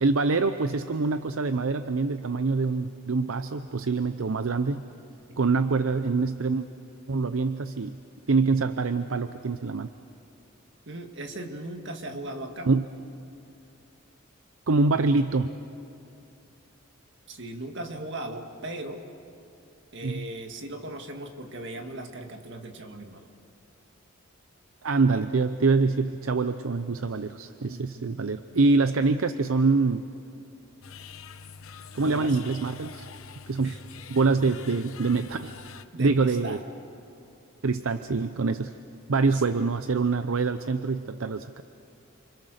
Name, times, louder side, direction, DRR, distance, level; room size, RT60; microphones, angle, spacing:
voice 1, 0.0-4.8 5.4-6.7 7.1-8.0 8.3-9.9 12.7-12.8 14.7-15.5 20.0-20.3 24.8-30.1 31.9-33.1 33.5-33.7 34.1-35.6 36.0-36.6 37.6-38.7 39.1-41.6, right 4 dB, 75° right, 10 dB, 0.7 m, -25 dB
voice 2, 5.3-5.6 10.9-12.7 17.3-19.0 19.9-23.3 27.7-28.2 32.0-32.4 33.6-33.8 35.9-36.6 39.3-39.4, right 1 dB, 60° right, 5 dB, 2.0 m, -38 dB
sound 1, 30.8-35.9, left 5 dB, 85° left, 0.9 m, -45 dB
29.0 x 26.0 x 6.6 m, 2.7 s
head